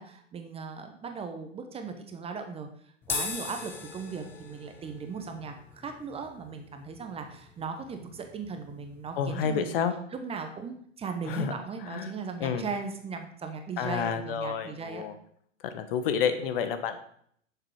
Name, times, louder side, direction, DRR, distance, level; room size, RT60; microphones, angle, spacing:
voice 1, 0.0-9.7 10.1-15.0, right 5 dB, 15° right, 6 dB, 1.0 m, -38 dB
sound 1, 3.0-9.6, left 5 dB, 5° left, 0.3 m, -41 dB
voice 2, 9.2-9.9 11.3-11.5 11.9-12.1 12.4-12.6 13.8-15.1 15.6-17.0, left 7 dB, 45° left, 10 dB, 1.2 m, -29 dB
10.0 x 6.9 x 4.7 m, 0.66 s
figure-of-eight pair, 100°, 38 cm